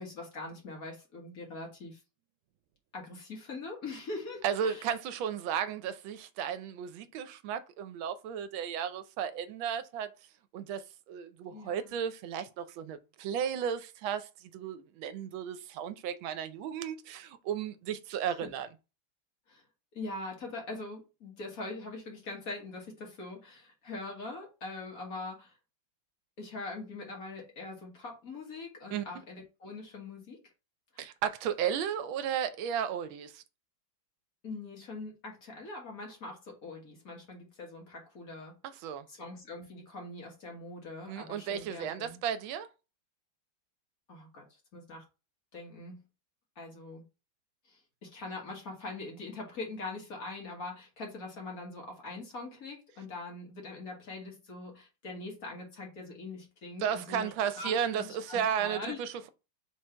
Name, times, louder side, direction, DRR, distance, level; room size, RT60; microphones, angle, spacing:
voice 1, 0.0-2.0 2.9-4.9 11.5-12.0 18.3-18.5 19.5-19.6 19.9-25.6 26.4-30.4 30.9-31.1 34.4-38.5 39.1-42.2 44.1-45.0 45.5-46.0 46.5-47.0 47.6-57.3 57.6-59.0, left 3 dB, 50° left, 1.7 m, -42 dB
voice 2, 4.4-10.1 10.5-18.7 28.9-29.0 31.0-33.4 38.8-39.1 41.1-42.7 56.8-59.3, right 8 dB, 80° right, 1.4 m, -34 dB
3.9 x 3.2 x 4.3 m
omnidirectional pair, 2.2 m